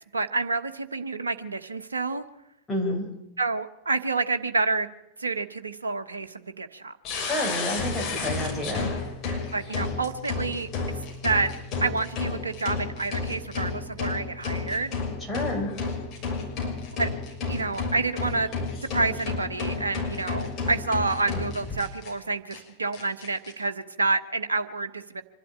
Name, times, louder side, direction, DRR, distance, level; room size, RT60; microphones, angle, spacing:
voice 1, 0.1-2.2 3.4-4.9 5.2-6.9 9.5-11.5 11.8-14.9 17.0-17.1 17.5-18.5 18.9-25.2, right 3 dB, 75° right, 9 dB, 1.1 m, -28 dB
voice 2, 2.7-3.1 7.2-8.9 15.3-15.7, left 1 dB, 10° left, -1 dB, 5.8 m, -29 dB
sound 1, 7.0-22.1 22.5-22.6 22.9-23.5, left 4 dB, 35° left, 6.1 m, -31 dB
25.0 x 11.5 x 8.9 m, 0.89 s
figure-of-eight pair, 90°, 0 cm